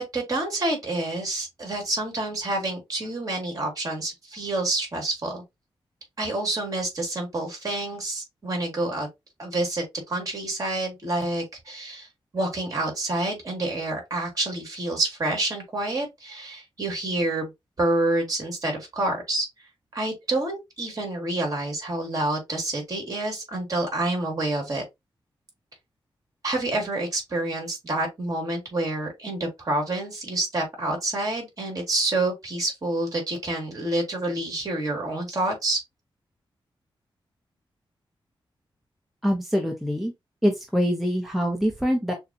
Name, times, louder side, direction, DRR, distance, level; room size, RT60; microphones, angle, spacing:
voice 1, 0.0-5.4 6.2-9.1 9.4-12.1 12.3-17.5 17.8-19.5 19.9-24.8 26.4-35.8, right 2 dB, 40° right, 2.6 m, -28 dB
voice 2, 39.2-40.1 40.4-42.1, equal, ahead, 0.9 m, -24 dB
6.4 x 2.4 x 2.8 m
wide cardioid pair, 105°, 9 cm